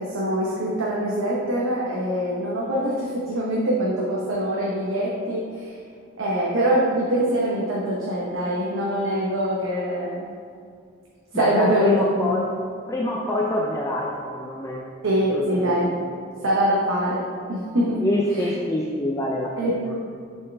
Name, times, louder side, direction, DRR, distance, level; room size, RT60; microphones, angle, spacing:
voice 1, 0.0-5.7 6.2-10.4 11.3-12.4 15.0-15.9 16.4-18.1 18.4-18.5 19.6-19.8, right 1 dB, 85° right, -4 dB, 0.8 m, -24 dB
voice 2, 11.3-12.5 12.9-14.8 15.3-15.9 18.0-19.9, left 1 dB, 15° left, -2 dB, 0.4 m, -26 dB
6.3 x 4.5 x 3.4 m, 2.3 s
head